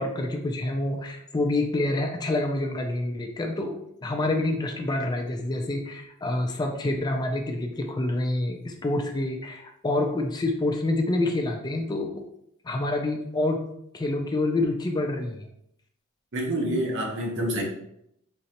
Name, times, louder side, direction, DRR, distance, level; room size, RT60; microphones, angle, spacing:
voice 1, 0.0-12.3 12.6-13.6 13.9-15.5, left 2 dB, 20° left, 3 dB, 0.3 m, -27 dB
voice 2, 16.3-17.6, right 1 dB, 60° right, 0 dB, 0.9 m, -27 dB
3.9 x 3.1 x 2.8 m, 0.76 s
head